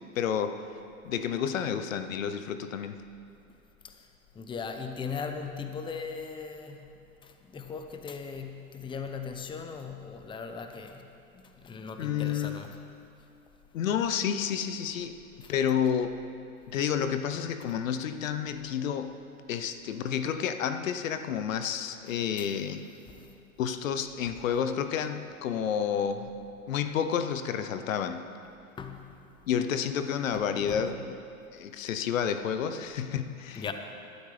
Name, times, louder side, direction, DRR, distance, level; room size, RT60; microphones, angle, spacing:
voice 1, 0.1-0.6 1.0-3.0 12.0-12.6 13.7-15.2 15.5-16.2 16.7-22.8 23.6-28.3 29.5-31.2 31.5-33.7, left 8 dB, 65° left, 9 dB, 0.9 m, -30 dB
voice 2, 4.3-6.9 7.2-12.7 15.4-15.5 22.4-22.5 23.1-23.4 28.8-29.2 30.3-30.9 33.6-33.7, left 5 dB, 10° left, 6 dB, 0.8 m, -39 dB
19.5 x 12.5 x 3.4 m, 2.5 s
hypercardioid pair, 100°, 42 cm